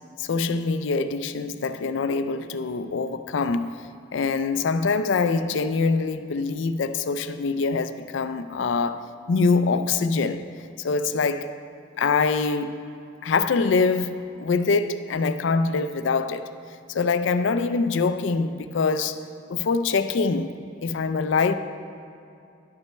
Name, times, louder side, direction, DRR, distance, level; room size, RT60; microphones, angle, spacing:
voice 1, 0.2-3.8 4.1-10.5 10.8-11.5 12.0-12.8 13.2-16.4 16.9-19.2 19.5-21.5, left 4 dB, 70° left, 0.4 m, -24 dB
11.0 x 5.9 x 4.5 m
head